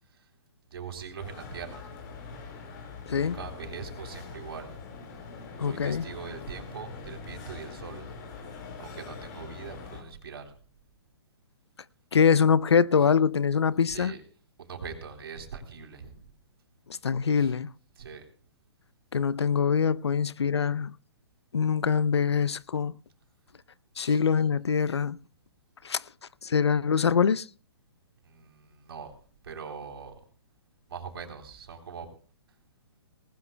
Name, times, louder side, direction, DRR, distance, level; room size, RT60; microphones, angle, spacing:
voice 1, 0.7-1.9 3.2-4.7 5.6-8.0 8.8-10.5 13.0-13.1 13.8-14.2 14.6-16.3 17.4-17.5 18.0-18.3 24.0-24.2 28.2-29.1 29.4-30.1 30.9-32.1, right 6 dB, 65° right, 3.5 m, -42 dB
sound 1, 1.2-10.0, left 5 dB, 45° left, 4.6 m, -43 dB
voice 2, 5.6-6.0 12.1-14.1 17.0-17.7 19.1-21.0 21.5-22.9 24.0-25.2 25.8-26.0 26.4-27.4, left 6 dB, 85° left, 0.6 m, -24 dB
19.5 x 18.5 x 2.2 m
hypercardioid pair, 130°, 14 cm